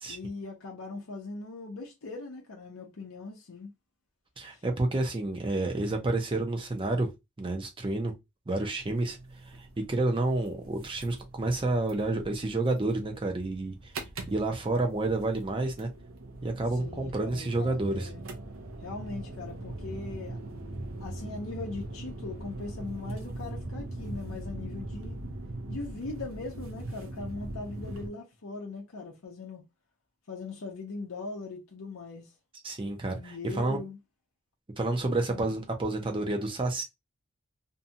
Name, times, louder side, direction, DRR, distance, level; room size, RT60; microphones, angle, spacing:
voice 1, 0.1-3.7 4.5-4.6 16.8-18.2 18.8-20.4 21.0-25.2 25.7-29.6 30.3-32.3 33.2-34.0 35.3-35.5, left 3 dB, 65° left, 0.6 m, -40 dB
voice 2, 4.4-7.1 7.4-8.1 8.5-9.2 9.8-13.7 14.3-15.9 16.4-18.1 32.6-33.8 34.8-36.8, right 2 dB, 25° right, 0.6 m, -29 dB
sound 1, 8.8-28.1, right 2 dB, 65° right, 0.6 m, -41 dB
2.6 x 2.3 x 2.7 m
head